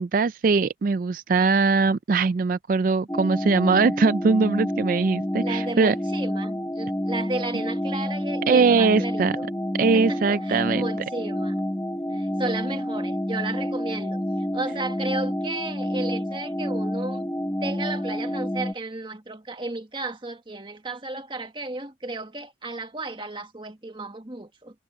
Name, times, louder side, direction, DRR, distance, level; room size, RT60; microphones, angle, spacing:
voice 1, 0.0-6.0 8.5-9.4 9.7-10.9, right 4 dB, 45° right, 0.3 m, -21 dB
sound 1, 3.1-18.7, equal, 10° left, 1.0 m, -29 dB
voice 2, 5.4-9.4 9.9-11.5 12.1-14.2 14.5-17.3 17.6-24.8, right 2 dB, 25° right, 1.7 m, -33 dB
head